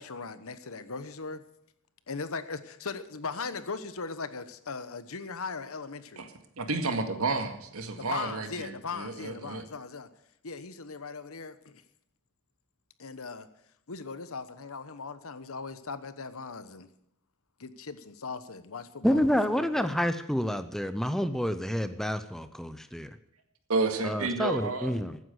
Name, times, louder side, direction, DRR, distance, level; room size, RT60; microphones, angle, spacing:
voice 1, 0.0-1.4 2.1-6.2 8.0-10.1 10.4-11.8 13.0-13.5 13.9-16.9 17.6-19.2 19.6-19.9, left 4 dB, 65° left, 1.1 m, -39 dB
voice 2, 6.6-9.6 23.7-24.9, right 3 dB, 70° right, 2.0 m, -31 dB
voice 3, 19.0-23.2 24.0-25.2, equal, ahead, 0.5 m, -28 dB
14.5 x 9.4 x 8.1 m
head